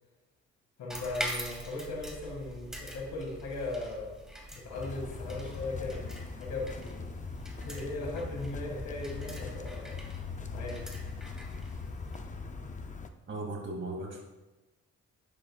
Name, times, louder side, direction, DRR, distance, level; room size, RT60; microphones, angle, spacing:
voice 1, 0.8-4.2 4.5-7.1 7.6-10.0 10.5-10.9, left 2 dB, 80° left, 0 dB, 2.2 m, -38 dB
sound 1, 0.9-12.2, equal, ahead, 1.8 m, -44 dB
sound 2, 4.7-13.1, left 4 dB, 25° left, 0.6 m, -41 dB
voice 2, 13.3-14.2, right 2 dB, 40° right, -1 dB, 2.6 m, -37 dB
10.5 x 7.4 x 2.4 m, 1.1 s
cardioid pair, 90°, 30 cm